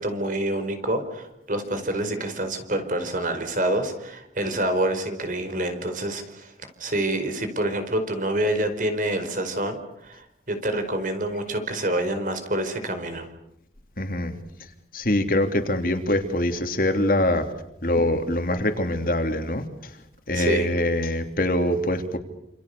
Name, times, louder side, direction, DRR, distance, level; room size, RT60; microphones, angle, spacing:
voice 1, 0.0-6.5 6.8-9.8 10.0-13.3 20.3-20.7, right 1 dB, 50° right, 8 dB, 4.8 m, -27 dB
voice 2, 14.0-14.3 14.9-17.4 17.8-19.6 20.3-22.2, left 1 dB, 50° left, 6 dB, 3.1 m, -23 dB
28.5 x 28.0 x 6.9 m, 0.78 s
head